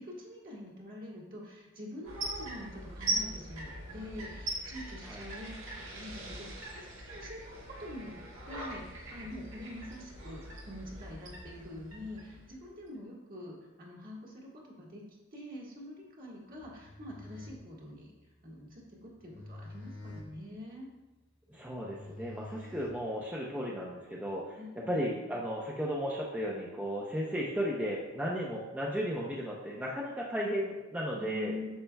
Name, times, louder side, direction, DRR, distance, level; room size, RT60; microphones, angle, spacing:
voice 1, 0.0-8.2 8.5-15.0 15.3-18.1 18.4-20.9 24.6-25.3 31.1-31.7, left 1 dB, 45° right, -3 dB, 1.8 m, -45 dB
sound 1, 2.0-12.9, right 1 dB, 75° right, 1.8 m, -41 dB
sound 2, 16.5-23.5, left 2 dB, 80° left, 1.2 m, -49 dB
voice 2, 21.5-24.6 24.9-31.5, equal, 10° right, -4 dB, 0.7 m, -35 dB
8.6 x 6.6 x 2.3 m, 1.1 s
head